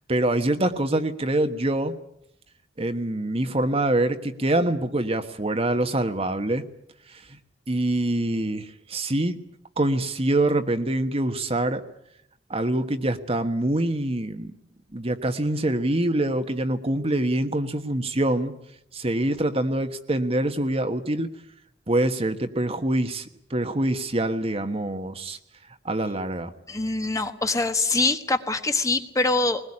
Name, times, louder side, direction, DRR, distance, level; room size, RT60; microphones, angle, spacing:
voice 1, 0.1-1.9 2.8-6.6 7.1-7.4 7.7-9.4 9.8-11.8 12.5-14.5 14.9-18.5 18.9-21.3 21.9-25.4 25.8-26.5, right 1 dB, 35° right, 8 dB, 1.4 m, -25 dB
voice 2, 26.7-29.6, left 3 dB, 20° left, 7 dB, 1.4 m, -24 dB
21.0 x 20.5 x 9.9 m, 0.74 s
head